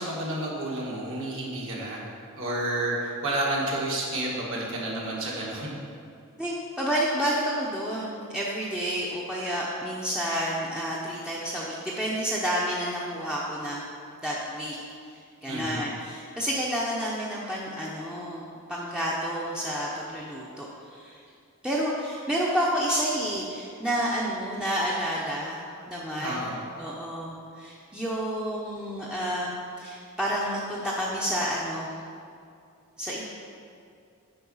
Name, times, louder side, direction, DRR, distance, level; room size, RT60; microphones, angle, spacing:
voice 1, 0.0-2.0 2.4-5.7 15.5-15.9 26.2-26.6, right 1 dB, 60° right, -4 dB, 1.9 m, -30 dB
voice 2, 6.4-13.8 14.2-14.8 15.4-18.4 18.7-20.7 20.9-21.2 21.6-25.6 25.9-26.5 26.8-29.5 29.8-31.9 33.0-33.2, equal, 5° right, -6 dB, 0.7 m, -30 dB
8.6 x 5.3 x 5.5 m, 2.4 s
head